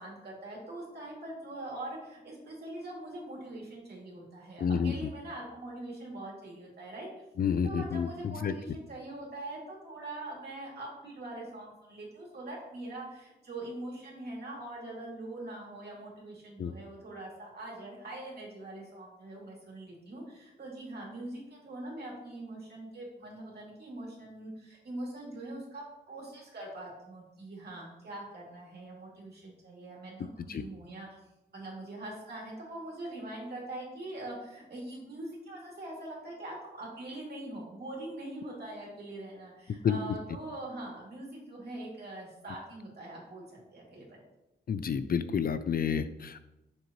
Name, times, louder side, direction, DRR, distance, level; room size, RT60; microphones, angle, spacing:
voice 1, 0.0-7.1 7.6-31.1 31.5-44.2, right 1 dB, 55° right, -3 dB, 2.6 m, -43 dB
voice 2, 4.6-5.1 7.4-8.5 16.6-16.7 30.5-30.6 39.8-40.0 44.7-46.4, left 7 dB, 50° left, 12 dB, 0.4 m, -30 dB
6.9 x 6.6 x 3.0 m, 0.92 s
wide cardioid pair, 100°, 19 cm